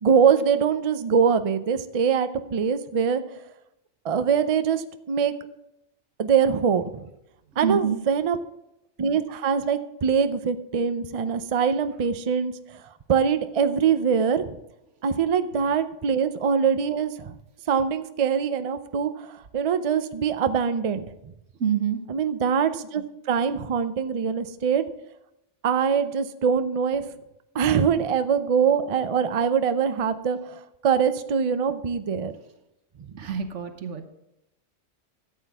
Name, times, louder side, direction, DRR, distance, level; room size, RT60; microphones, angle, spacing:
voice 1, 0.0-3.2 4.0-5.3 6.2-7.1 7.6-8.4 9.0-12.8 13.1-14.6 15.0-17.3 17.7-21.1 22.1-24.8 25.6-27.0 27.5-32.3, right 7 dB, 40° right, 10 dB, 0.5 m, -23 dB
voice 2, 7.6-8.0 21.6-22.0 33.2-34.1, right 8 dB, 85° right, 8 dB, 1.3 m, -26 dB
13.5 x 8.3 x 3.5 m, 0.86 s
omnidirectional pair, 1.2 m